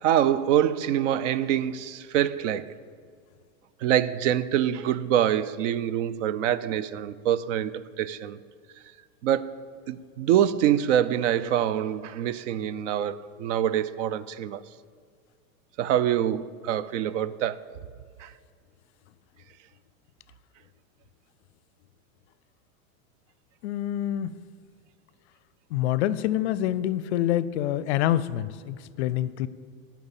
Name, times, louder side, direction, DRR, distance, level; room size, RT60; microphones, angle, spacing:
voice 1, 0.0-2.7 3.8-8.4 9.2-9.6 9.9-14.6 15.8-17.6 18.2-18.3, right 10 dB, 60° right, 0.5 m, -25 dB
voice 2, 23.6-24.4 25.7-29.5, left 12 dB, 55° left, 0.5 m, -26 dB
11.0 x 5.9 x 7.2 m
supercardioid pair, 155°, 42 cm